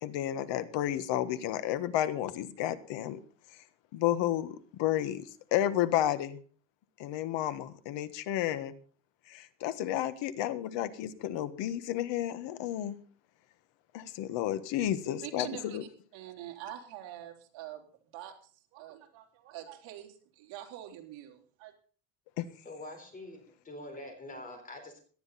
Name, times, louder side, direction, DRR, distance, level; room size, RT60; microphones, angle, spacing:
voice 1, 0.0-3.2 3.5-3.6 3.9-6.4 7.0-8.7 9.3-13.0 13.9-15.8 22.4-22.5, left 12 dB, 60° left, 12 dB, 1.4 m, -32 dB
voice 2, 15.2-15.8 16.1-17.8 18.1-21.7, right 12 dB, 65° right, 1 dB, 4.1 m, -45 dB
voice 3, 22.6-25.0, left 1 dB, 15° left, 5 dB, 3.9 m, -45 dB
18.0 x 12.0 x 4.2 m, 0.43 s
cardioid pair, 170°, 48 cm